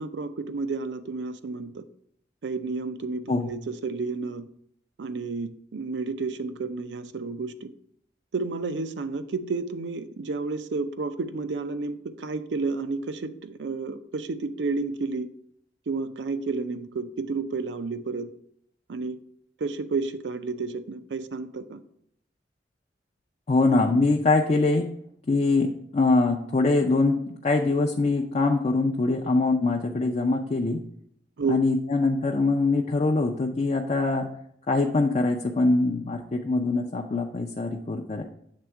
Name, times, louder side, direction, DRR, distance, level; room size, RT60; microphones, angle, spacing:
voice 1, 0.0-1.8 2.4-4.5 5.0-7.7 8.3-15.3 15.9-18.3 18.9-19.2 19.6-21.8 31.4-31.6, right 4 dB, 85° right, 11 dB, 0.5 m, -31 dB
voice 2, 23.5-24.9 25.3-30.8 31.5-34.3 34.7-38.2, left 3 dB, 35° left, 2 dB, 0.4 m, -23 dB
7.5 x 3.5 x 4.6 m, 0.72 s
head